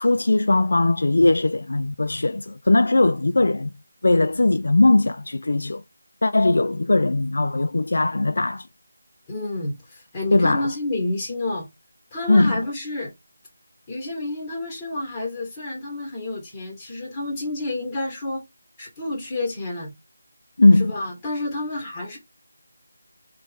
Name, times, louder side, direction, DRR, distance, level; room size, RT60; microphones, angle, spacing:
voice 1, 0.0-3.7 4.0-5.8 6.2-8.7 10.3-10.7 12.3-12.6 20.6-20.9, left 2 dB, 65° left, 0.3 m, -19 dB
voice 2, 9.3-11.7 12.1-13.1 13.9-18.5 18.8-19.9 20.8-22.2, left 2 dB, 15° left, 1.8 m, -29 dB
4.2 x 2.7 x 3.6 m
figure-of-eight pair, 165°, 0 cm